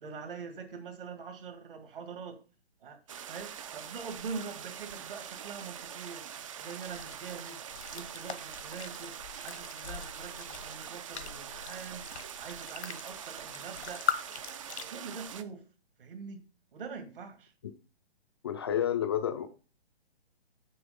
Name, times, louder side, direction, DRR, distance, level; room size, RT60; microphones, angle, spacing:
voice 1, 0.0-2.4 2.8-6.2 6.6-7.6 7.9-12.1 12.4-14.0 14.9-15.6 16.0-16.4 16.7-17.5, right 5 dB, 55° right, 7 dB, 2.0 m, -43 dB
sound 1, 3.1-15.4, right 9 dB, 30° right, 0.5 m, -44 dB
sound 2, 6.8-14.8, left 7 dB, 80° left, 1.1 m, -41 dB
voice 2, 18.4-19.5, left 10 dB, 25° left, 6 dB, 0.4 m, -30 dB
7.0 x 6.1 x 5.2 m, 0.36 s
figure-of-eight pair, 140°, 32 cm